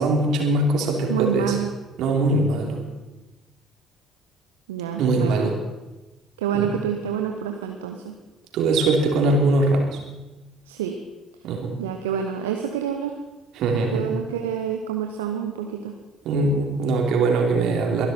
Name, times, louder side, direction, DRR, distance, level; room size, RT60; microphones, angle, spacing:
voice 1, 0.0-1.5 2.0-2.8 5.0-5.5 6.6-6.7 8.5-9.9 11.4-11.7 13.6-14.0 16.2-18.1, right 2 dB, 60° right, 1 dB, 3.2 m, -21 dB
voice 2, 1.1-1.7 4.7-5.5 6.4-8.1 10.7-11.0 11.8-13.1 13.9-15.9, right 8 dB, 75° right, 4 dB, 1.0 m, -27 dB
23.5 x 11.5 x 4.4 m, 1.1 s
figure-of-eight pair, 50°, 0 cm